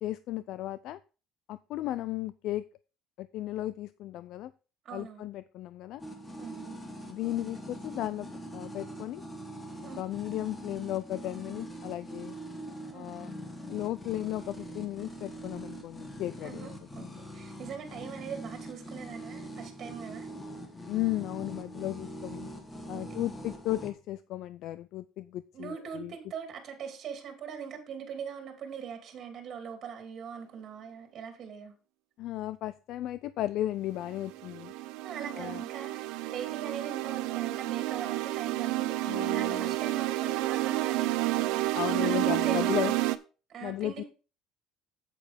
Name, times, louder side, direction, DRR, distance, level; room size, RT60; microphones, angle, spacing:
voice 1, 0.0-1.0 1.5-2.6 3.2-4.5 4.9-6.0 7.1-8.3 8.5-9.2 10.0-12.4 12.9-13.3 13.7-16.7 17.0-17.1 20.9-22.5 22.9-26.1 32.2-34.7 35.3-35.6 39.0-39.8 41.7-42.9 43.6-44.0, left 14 dB, 55° left, 15 dB, 0.3 m, -35 dB
voice 2, 4.8-5.3 6.4-6.8 9.8-10.1 12.9-13.1 16.4-20.3 22.9-23.3 25.5-31.7 35.0-42.2 42.4-42.9 43.5-44.0, right 7 dB, 35° right, 5 dB, 2.5 m, -41 dB
sound 1, 6.0-23.9, right 1 dB, 10° left, 1.3 m, -43 dB
sound 2, 34.0-43.2, right 17 dB, 80° right, 0.6 m, -30 dB
8.7 x 8.3 x 3.4 m, 0.33 s
cardioid pair, 165°, 0 cm